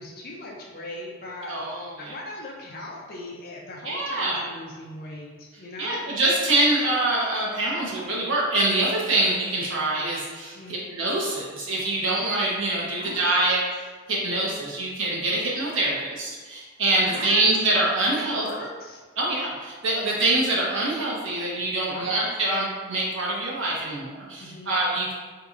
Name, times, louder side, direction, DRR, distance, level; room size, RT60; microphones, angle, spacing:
voice 1, 0.0-1.6 2.0-6.1 10.5-10.9 13.0-13.3 17.1-17.5 18.1-19.0 21.9-22.3 24.4-24.8, left 2 dB, 45° left, -2 dB, 0.5 m, -39 dB
voice 2, 1.4-2.1 3.8-4.4 5.8-13.8 14.1-18.5 19.2-25.1, right 2 dB, 65° right, -5 dB, 0.9 m, -25 dB
4.0 x 2.7 x 2.5 m, 1.4 s
head